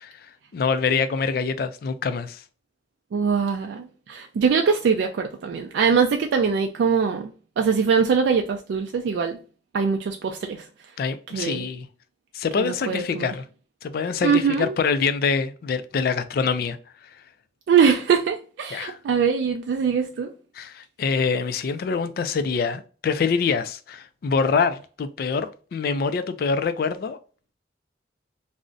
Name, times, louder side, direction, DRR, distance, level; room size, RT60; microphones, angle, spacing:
voice 1, 0.0-2.4 11.0-11.9 12.3-13.4 13.8-16.8 18.7-19.0 20.5-27.2, left 5 dB, 55° left, 0.3 m, -25 dB
voice 2, 3.1-9.4 9.7-10.7 11.3-11.6 12.6-13.3 14.2-14.8 17.7-20.3, right 6 dB, 80° right, 0.3 m, -22 dB
2.5 x 2.0 x 3.6 m
head